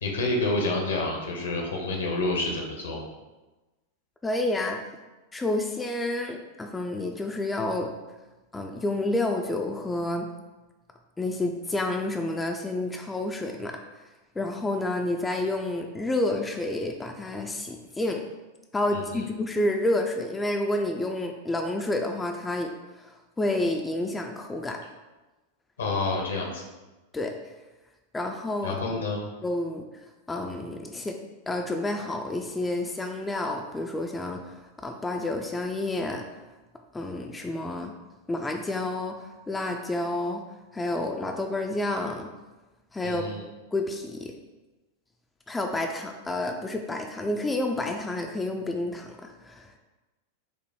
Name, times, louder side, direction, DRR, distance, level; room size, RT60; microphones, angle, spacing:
voice 1, 0.0-3.0 18.9-19.2 25.8-26.6 28.6-29.2 43.0-43.4, left 2 dB, 65° left, 1 dB, 0.8 m, -28 dB
voice 2, 4.2-4.8 5.3-7.9 8.5-10.3 11.2-13.8 14.4-18.2 18.7-22.7 22.9-24.8 27.1-27.3 28.1-28.8 29.4-29.8 30.3-31.1 31.5-36.2 36.9-37.9 38.3-40.4 40.7-42.3 42.9-43.2 43.7-44.3 45.5-49.7, left 2 dB, 10° left, 3 dB, 0.3 m, -29 dB
5.2 x 2.1 x 3.5 m, 1.1 s
figure-of-eight pair, 90°, 0 cm